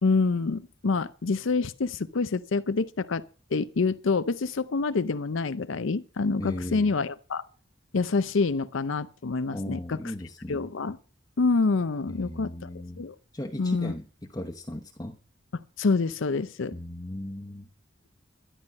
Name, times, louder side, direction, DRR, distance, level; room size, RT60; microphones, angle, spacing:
voice 1, 0.0-3.3 3.5-7.4 7.9-10.1 10.5-11.0 11.4-12.7 13.0-13.1 13.6-13.9 15.8-16.7, left 4 dB, 80° left, 0.6 m, -27 dB
voice 2, 6.4-6.9 9.5-10.6 12.1-13.0 13.3-14.1 14.3-15.2 16.7-17.7, left 1 dB, 20° left, 0.9 m, -36 dB
12.0 x 11.0 x 5.3 m
head